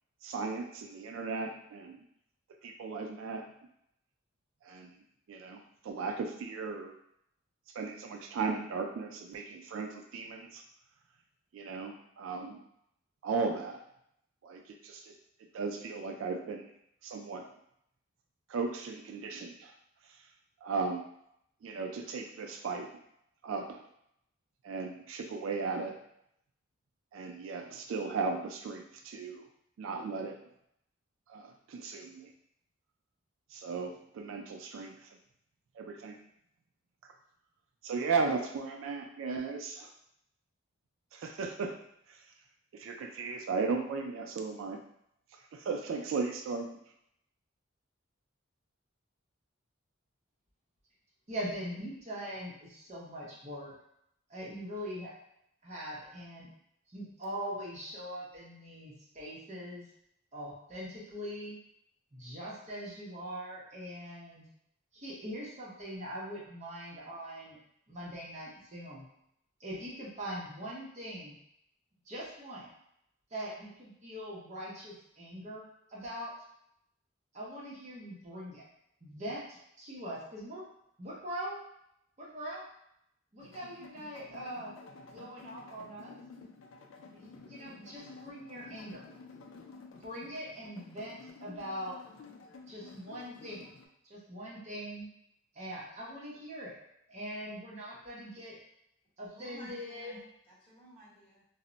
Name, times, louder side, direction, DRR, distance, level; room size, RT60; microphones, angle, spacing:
voice 1, 0.2-2.0 2.6-3.5 4.6-4.9 5.3-6.9 7.7-10.6 11.5-12.6 13.2-13.8 14.4-15.1 15.5-16.7 17.0-17.5 18.5-19.7 20.6-21.0 21.6-22.9 23.4-23.8 24.6-26.0 27.1-29.4 29.8-30.4 31.3-32.3 33.5-35.1 35.8-36.2 37.8-39.9 41.1-41.8 42.1-42.2 42.7-44.8 45.5-46.7, right 4 dB, 75° right, 4 dB, 0.3 m, -36 dB
voice 2, 51.3-53.7 54.3-55.1 55.6-56.5 56.9-59.8 60.3-61.6 62.1-64.4 64.9-67.6 67.9-69.1 69.6-71.3 72.1-72.7 73.3-75.6 75.9-76.3 77.3-78.6 79.0-80.6 81.0-81.6 82.2-82.6 83.3-84.7 85.1-86.2 87.1-89.0 90.0-92.0 92.7-93.7 94.0-95.1 95.5-96.8 97.1-98.6 99.2-100.2, equal, 35° right, -5 dB, 0.6 m, -42 dB
sound 1, 83.4-93.9, left 4 dB, 70° left, 0.3 m, -52 dB
voice 3, 99.3-101.4, right 1 dB, 25° left, -9 dB, 1.0 m, -54 dB
2.1 x 2.0 x 3.7 m, 0.75 s
head